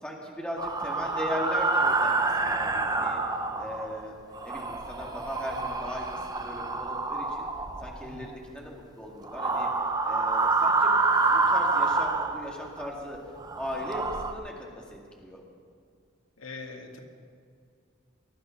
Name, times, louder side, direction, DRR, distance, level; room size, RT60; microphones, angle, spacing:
voice 1, 0.0-3.2 3.6-4.1 4.4-7.5 7.8-9.7 10.0-13.2 13.6-15.4, left 1 dB, 5° left, -2 dB, 2.1 m, -38 dB
sound 1, 0.6-4.0 4.3-8.3 9.2-12.9 13.4-14.3, right 3 dB, 20° right, 0.8 m, -27 dB
voice 2, 8.0-8.3 16.4-17.0, left 3 dB, 85° left, 2 dB, 2.0 m, -42 dB
19.5 x 12.0 x 5.8 m, 2.3 s
head